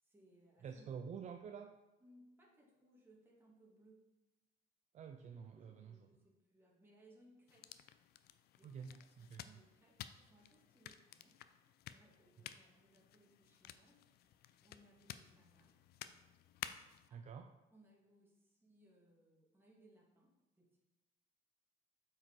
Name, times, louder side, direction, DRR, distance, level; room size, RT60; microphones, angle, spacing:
voice 1, 0.0-0.9 2.0-4.1 5.5-7.8 8.6-11.4 11.9-15.8 17.1-17.3 17.7-20.8, right 1 dB, 15° right, -3 dB, 2.2 m, -67 dB
voice 2, 0.6-1.7 4.9-5.9 8.6-8.9 9.3-9.4 17.1-17.5, right 6 dB, 45° right, 6 dB, 0.5 m, -48 dB
Flip Phone Handling, 7.5-17.1, left 11 dB, 70° left, 0.5 m, -54 dB
7.7 x 4.8 x 4.5 m, 1.0 s
cardioid pair, 110°, 17 cm